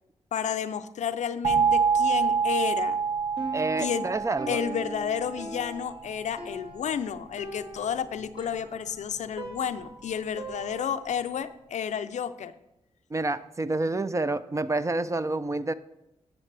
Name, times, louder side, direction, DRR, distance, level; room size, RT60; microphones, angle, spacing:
voice 1, 0.3-3.0 3.8-4.1 4.5-12.5, left 8 dB, 70° left, 12 dB, 0.5 m, -31 dB
sound 1, 1.4-6.2, right 6 dB, 80° right, 1.3 m, -27 dB
Piano, 3.4-11.2, right 2 dB, 45° right, 1.6 m, -41 dB
voice 2, 3.5-4.6 13.1-15.7, right 2 dB, 25° right, 13 dB, 0.4 m, -28 dB
9.8 x 7.0 x 3.3 m, 0.89 s
supercardioid pair, 45°, 13 cm